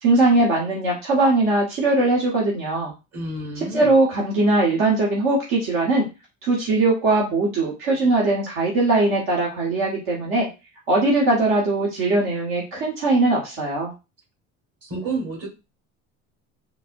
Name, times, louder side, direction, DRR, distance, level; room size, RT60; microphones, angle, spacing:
voice 1, 0.0-2.9 3.6-6.1 6.4-10.5 10.9-13.9, right 2 dB, 75° right, -4 dB, 1.2 m, -20 dB
voice 2, 3.1-3.9 14.8-15.5, right 2 dB, 45° right, -1 dB, 1.8 m, -29 dB
3.9 x 2.1 x 2.5 m, 0.27 s
supercardioid pair, 80°, 34 cm